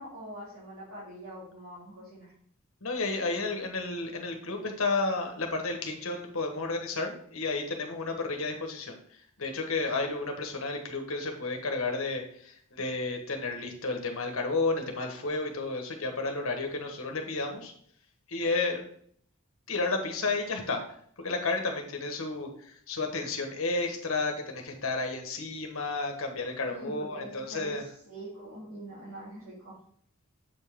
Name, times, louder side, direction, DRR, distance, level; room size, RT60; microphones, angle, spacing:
voice 1, 0.0-2.3 26.6-29.8, right 1 dB, 80° right, -9 dB, 3.2 m, -44 dB
voice 2, 2.8-17.7 18.3-18.8 19.7-20.8 21.2-27.8, left 3 dB, 70° left, 4 dB, 1.3 m, -32 dB
7.5 x 5.4 x 3.6 m, 0.63 s
head